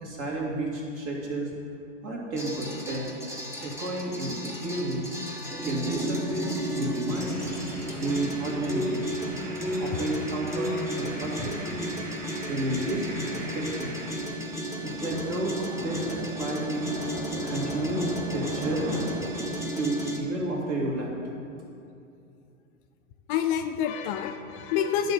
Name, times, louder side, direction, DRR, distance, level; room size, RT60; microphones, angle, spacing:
voice 1, 0.0-1.5 2.0-3.2 3.6-5.1 5.6-7.4 8.0-9.1 9.8-11.8 12.5-13.1 13.4-13.9 14.8-16.9 17.4-19.0 19.7-21.1, right 1 dB, 40° right, -2 dB, 2.3 m, -31 dB
sound 1, 2.4-20.2, equal, 5° right, 1.2 m, -34 dB
sound 2, 7.1-14.3 14.7-19.5, right 1 dB, 55° right, 2.4 m, -39 dB
voice 2, 23.3-25.1, left 8 dB, 40° left, 7 dB, 0.5 m, -28 dB
10.0 x 4.0 x 7.1 m, 2.6 s
hypercardioid pair, 95°, 38 cm